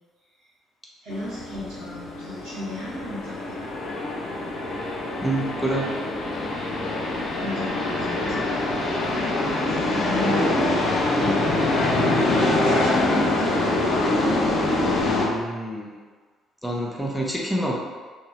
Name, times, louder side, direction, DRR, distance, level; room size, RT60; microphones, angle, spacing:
voice 1, 1.0-3.7 7.4-8.5 9.4-11.5 12.2-13.5, equal, 60° right, -12 dB, 0.8 m, -35 dB
sound 1, 1.1-15.3, left 2 dB, 55° left, 0.5 m, -24 dB
voice 2, 5.2-5.9 15.0-15.9 16.6-17.7, right 1 dB, 5° left, -3 dB, 0.7 m, -27 dB
2.7 x 2.5 x 2.9 m, 1.4 s
figure-of-eight pair, 45°, 0 cm